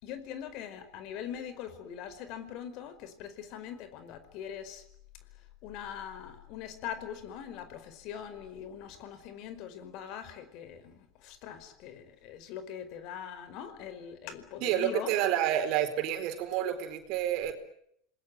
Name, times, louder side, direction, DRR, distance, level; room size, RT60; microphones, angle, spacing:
voice 1, 0.0-4.8 5.4-15.1, left 9 dB, 55° left, 11 dB, 4.9 m, -42 dB
voice 2, 14.6-17.5, right 11 dB, 60° right, 8 dB, 4.2 m, -29 dB
27.5 x 20.5 x 9.4 m, 0.70 s
hypercardioid pair, 95°, 0 cm